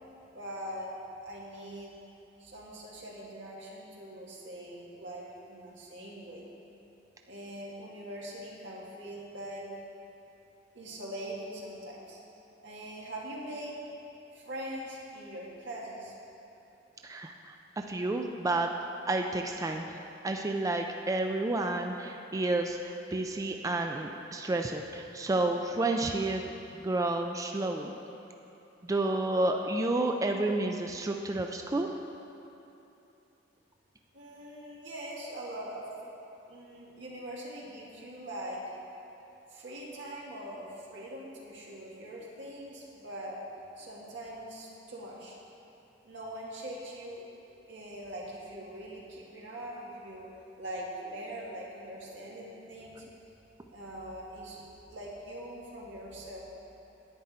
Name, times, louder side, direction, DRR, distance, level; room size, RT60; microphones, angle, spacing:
voice 1, 0.3-1.9 2.4-6.5 7.3-9.7 10.7-12.2 12.6-13.8 14.3-16.1 34.1-35.9 36.5-38.6 39.5-43.4 43.8-45.4 46.0-47.3 47.7-50.3 50.6-53.0 53.7-56.4, right 1 dB, 85° right, -4 dB, 1.9 m, -42 dB
voice 2, 17.0-18.7 19.1-20.0 20.2-27.9 28.8-31.9, right 2 dB, 20° right, 3 dB, 0.4 m, -30 dB
10.5 x 9.4 x 4.3 m, 2.9 s
head